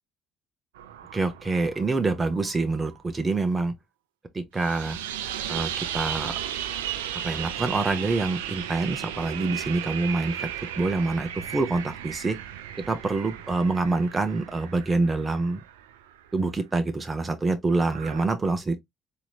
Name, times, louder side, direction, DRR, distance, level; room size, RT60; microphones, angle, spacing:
sound 1, 0.8-3.0 4.6-16.2 17.7-18.2, right 10 dB, 85° right, 0.4 m, -35 dB
voice 1, 1.1-3.7 4.3-5.0 5.5-6.3 7.2-10.5 10.8-12.4 12.9-15.6 16.3-18.8, right 3 dB, 25° right, 0.8 m, -26 dB
4.3 x 2.9 x 2.3 m
hypercardioid pair, 55°, 0 cm